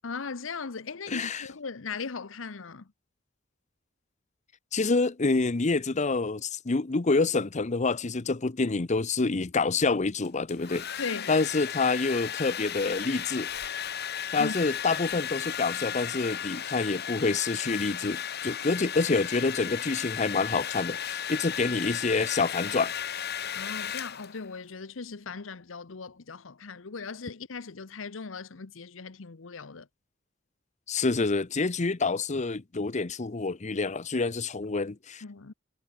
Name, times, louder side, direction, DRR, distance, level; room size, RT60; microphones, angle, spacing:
voice 1, 0.0-2.9 11.0-11.3 14.4-14.6 23.5-29.9 35.2-35.5, left 4 dB, 85° left, 0.9 m, -38 dB
voice 2, 1.1-1.4 4.7-10.9 11.3-13.5 14.3-22.9 30.9-35.2, left 3 dB, 40° left, 0.8 m, -27 dB
Domestic sounds home sounds, 10.2-24.5, left 9 dB, 55° left, 2.0 m, -35 dB
head